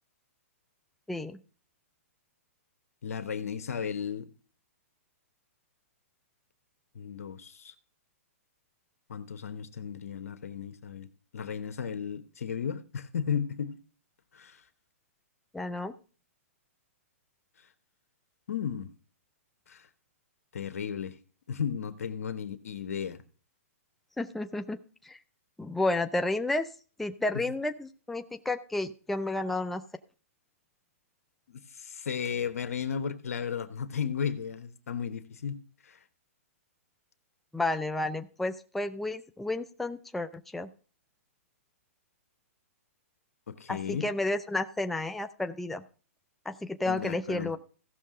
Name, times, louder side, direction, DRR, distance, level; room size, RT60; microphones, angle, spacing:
voice 1, 1.1-1.4 15.5-15.9 24.2-24.8 25.0-25.2 25.6-26.7 27.0-29.8 37.5-40.7 43.7-45.8 46.5-47.6, left 2 dB, ahead, 0.4 m, -31 dB
voice 2, 3.0-4.3 6.9-7.7 9.1-11.1 11.3-13.8 14.3-14.6 18.5-18.9 19.7-19.9 20.5-21.2 21.5-23.2 27.3-27.4 31.5-36.0 43.5-44.1 46.8-47.5, left 7 dB, 80° left, 1.0 m, -34 dB
15.5 x 6.4 x 3.7 m
hypercardioid pair, 140°, 8 cm